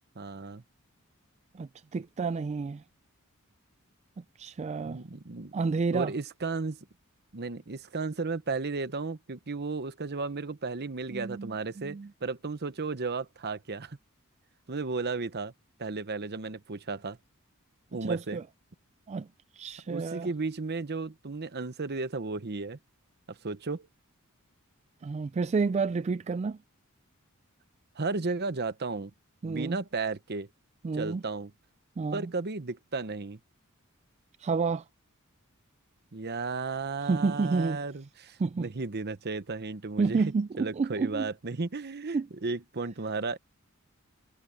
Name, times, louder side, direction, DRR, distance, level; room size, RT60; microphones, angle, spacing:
voice 1, 0.2-0.6 4.8-5.5 5.9-6.8 7.3-14.0 14.7-15.5 15.8-17.2 17.9-18.4 19.9-22.8 23.3-23.9 27.9-29.1 29.4-30.5 30.9-31.5 32.1-33.4 36.1-40.3 40.6-43.4, right 3 dB, 50° right, 0.9 m, -34 dB
voice 2, 1.5-2.8 4.4-5.0 5.5-6.1 11.1-12.1 18.0-18.4 19.1-19.3 19.5-20.3 25.0-26.6 29.4-29.8 30.8-31.2 32.0-32.3 34.4-34.8 37.0-37.8 38.4-38.7 40.0-41.3 42.1-42.3, right 4 dB, 30° right, 0.3 m, -30 dB
head